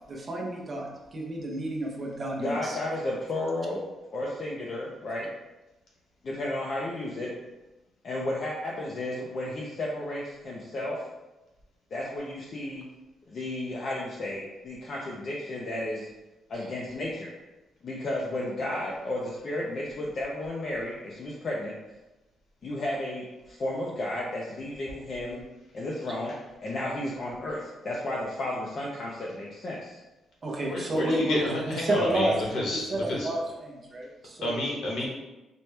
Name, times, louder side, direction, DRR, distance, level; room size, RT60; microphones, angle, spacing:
voice 1, 0.1-2.8 30.4-32.4 32.7-34.5, right 1 dB, 30° right, -1 dB, 0.7 m, -30 dB
voice 2, 2.4-3.9 4.1-5.3 6.2-7.3 8.0-11.0 11.9-12.8 13.3-16.1 16.5-17.3 17.8-21.7 22.6-25.4 25.7-26.3 26.6-30.0, left 1 dB, 40° left, -4 dB, 0.5 m, -33 dB
voice 3, 30.7-33.3 34.4-35.1, left 1 dB, 65° left, -3 dB, 1.1 m, -30 dB
4.2 x 2.2 x 3.2 m, 1.0 s
cardioid pair, 150°, 0 cm